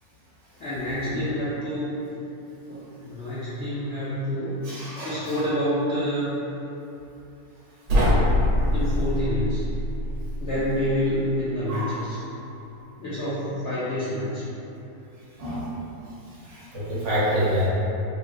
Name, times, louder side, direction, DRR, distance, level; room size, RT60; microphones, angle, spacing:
voice 1, 0.6-2.0 2.7-2.8 3.0-6.4 8.7-9.6 10.4-12.2 13.0-14.4, equal, 65° left, -11 dB, 0.7 m, -28 dB
voice 2, 4.6-5.3 11.7-12.0 15.4-15.7 16.5-17.7, equal, 55° right, -10 dB, 1.1 m, -27 dB
sound 1, 7.9-11.0, left 1 dB, 85° right, 1.2 m, -23 dB
3.5 x 2.4 x 2.4 m, 2.9 s
omnidirectional pair, 1.6 m